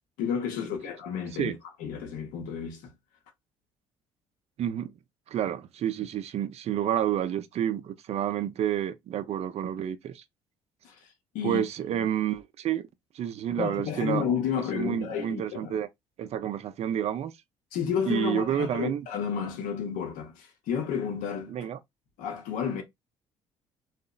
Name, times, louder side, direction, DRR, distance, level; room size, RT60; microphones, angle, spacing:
voice 1, 0.2-2.9 10.8-11.0 11.3-11.6 13.6-15.8 17.7-21.6 22.2-22.8, left 7 dB, 70° left, 0.7 m, -31 dB
voice 2, 4.6-4.9 5.3-10.2 11.4-12.9 13.1-14.3 14.5-15.9 16.2-17.3 18.1-19.0 21.5-21.8, right 10 dB, 45° right, 0.4 m, -29 dB
2.7 x 2.0 x 2.2 m
hypercardioid pair, 55°, 15 cm